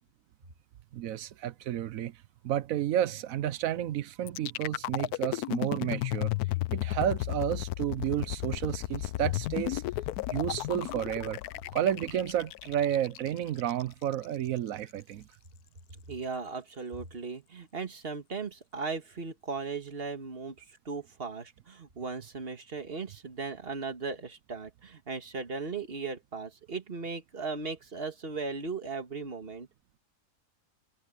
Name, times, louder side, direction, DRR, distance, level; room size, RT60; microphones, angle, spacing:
voice 1, 0.9-2.1 2.4-6.4 6.7-9.8 10.3-11.4 11.7-15.3, right 11 dB, 70° right, 1.1 m, -31 dB
sound 1, 4.3-14.3, left 16 dB, 85° left, 1.1 m, -34 dB
voice 2, 15.9-29.7, right 4 dB, 40° right, 2.1 m, -37 dB
omnidirectional pair, 1.6 m